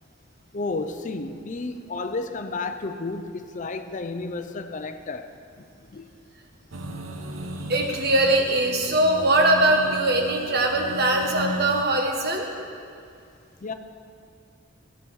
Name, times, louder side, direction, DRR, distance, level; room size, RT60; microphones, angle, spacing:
voice 1, 0.5-5.3 5.6-5.7 5.9-6.1 13.6-13.7, left 3 dB, 40° left, 8 dB, 0.6 m, -32 dB
sound 1, 6.7-11.8, left 1 dB, 85° right, 0.8 m, -36 dB
voice 2, 7.7-12.5, right 1 dB, 55° right, 2 dB, 1.3 m, -21 dB
12.5 x 7.7 x 6.3 m, 2.4 s
head